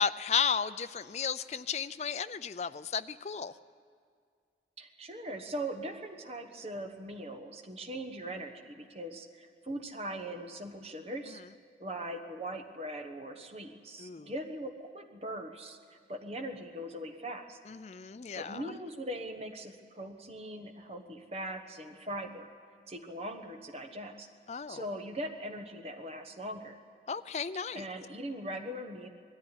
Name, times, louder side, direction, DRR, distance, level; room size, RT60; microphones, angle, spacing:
voice 1, 0.0-3.5 14.0-14.3 17.7-18.7 24.5-24.8 27.1-27.8, left 6 dB, 40° left, 13 dB, 0.4 m, -33 dB
voice 2, 4.8-11.4 11.8-17.6 18.4-22.5 22.9-24.3 24.7-26.8 27.7-29.1, right 1 dB, 35° right, 6 dB, 1.2 m, -40 dB
19.5 x 13.5 x 9.8 m, 2.1 s
head